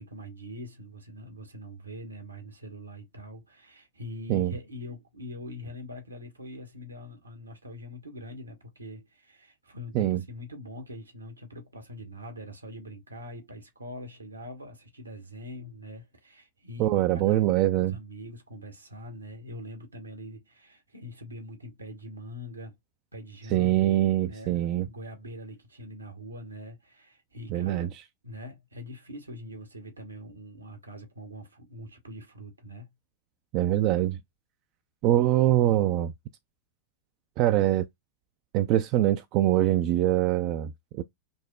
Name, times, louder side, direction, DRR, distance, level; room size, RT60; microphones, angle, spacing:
voice 1, 0.0-22.7 23.1-28.0 28.2-32.9, left 1 dB, 80° right, 1.0 m, -43 dB
voice 2, 16.8-18.0 23.5-24.9 27.5-27.9 33.5-34.2 35.0-36.1 37.4-37.9 38.5-41.0, right 13 dB, 40° right, 0.3 m, -23 dB
5.3 x 2.0 x 2.2 m
figure-of-eight pair, 90°, 0 cm